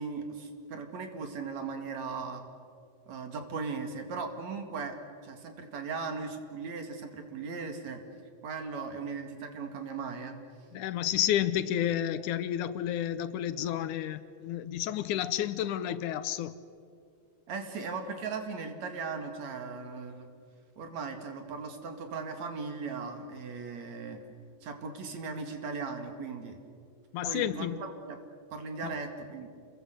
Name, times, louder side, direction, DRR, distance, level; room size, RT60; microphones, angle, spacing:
voice 1, 0.0-2.4 3.1-5.0 5.2-8.0 8.4-10.4 17.5-20.3 20.8-24.2 24.6-26.6 27.3-28.2 28.5-29.5, right 4 dB, 65° right, 3.4 m, -38 dB
voice 2, 10.7-16.6 27.1-27.8 28.8-28.9, left 11 dB, 80° left, 2.3 m, -31 dB
28.5 x 22.0 x 8.0 m
omnidirectional pair, 3.5 m